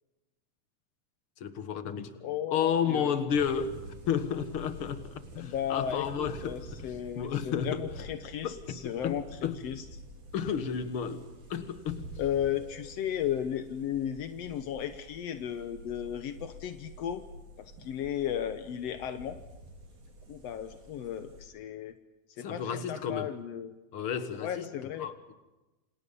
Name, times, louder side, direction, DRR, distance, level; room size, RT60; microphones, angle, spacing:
voice 1, 1.4-2.1 2.5-3.8 4.1-7.8 8.4-9.6 10.3-12.1 22.4-23.3 23.9-24.7 25.0-25.3, left 8 dB, 50° left, 1.8 m, -32 dB
voice 2, 2.2-3.1 5.4-9.8 12.2-17.2 17.6-19.4 20.3-21.9 22.4-23.7 24.4-25.1, left 10 dB, 75° left, 1.4 m, -35 dB
sound 1, 3.3-21.4, right 1 dB, 70° right, 6.3 m, -48 dB
28.5 x 27.5 x 5.5 m
omnidirectional pair, 4.2 m